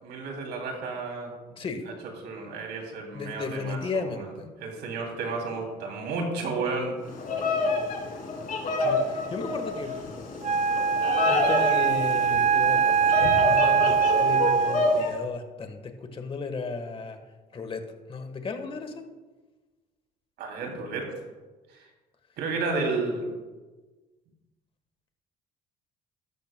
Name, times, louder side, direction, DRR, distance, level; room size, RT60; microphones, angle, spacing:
voice 1, 0.0-1.3 1.9-2.0 2.2-4.3 4.6-7.0 20.4-21.1 21.7-21.9 22.4-23.3, right 3 dB, 80° right, 1 dB, 2.8 m, -32 dB
voice 2, 1.5-1.9 3.1-4.5 8.8-9.9 11.2-17.2 17.5-17.8 18.1-19.0, left 4 dB, 35° left, 7 dB, 1.3 m, -34 dB
Bird vocalization bird call bird song, 7.1-15.1, left 2 dB, 55° left, 2.8 m, -28 dB
Wind instrument woodwind instrument, 10.4-15.0, right 6 dB, 40° right, 0.7 m, -22 dB
13.0 x 12.0 x 2.2 m, 1.3 s
cardioid pair, 110°, 17 cm